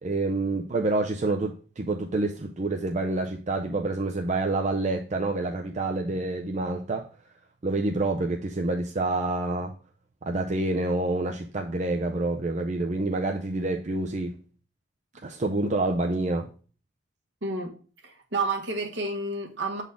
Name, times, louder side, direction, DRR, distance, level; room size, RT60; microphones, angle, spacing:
voice 1, 0.0-7.1 7.6-9.7 10.2-14.3 15.2-16.5, right 2 dB, 40° right, 0.5 m, -27 dB
voice 2, 17.4-17.8 18.0-19.8, right 3 dB, 65° right, 1.4 m, -30 dB
7.2 x 4.1 x 3.5 m
head